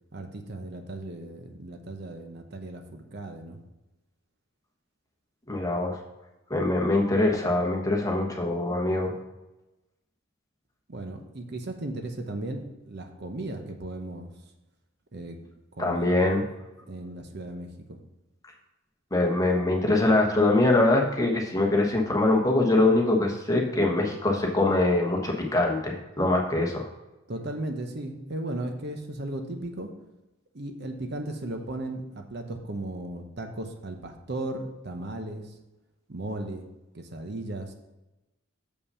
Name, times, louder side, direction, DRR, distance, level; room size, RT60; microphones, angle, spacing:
voice 1, 0.1-3.6 10.9-14.3 15.1-15.4 15.8-16.2 16.9-18.0 27.3-29.9 30.5-35.5 36.1-36.7 36.9-37.7, right 1 dB, 55° right, 5 dB, 0.8 m, -36 dB
voice 2, 5.5-6.0 6.5-9.1 15.8-16.4 19.1-26.9, left 2 dB, 15° left, 0 dB, 1.2 m, -23 dB
6.7 x 5.6 x 5.5 m, 1.0 s
head